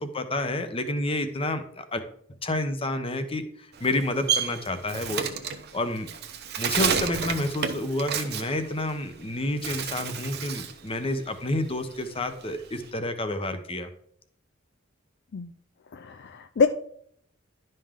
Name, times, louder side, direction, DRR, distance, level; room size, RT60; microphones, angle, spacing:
voice 1, 0.0-2.0 2.4-5.3 5.7-6.1 6.6-13.9, left 1 dB, 30° left, 9 dB, 0.8 m, -29 dB
Bird, 3.7-9.2 9.5-10.8 11.2-12.9, right 7 dB, 55° right, 0.9 m, -30 dB
voice 2, 15.9-16.7, left 5 dB, 55° left, 10 dB, 0.4 m, -25 dB
11.0 x 5.4 x 3.6 m, 0.65 s
head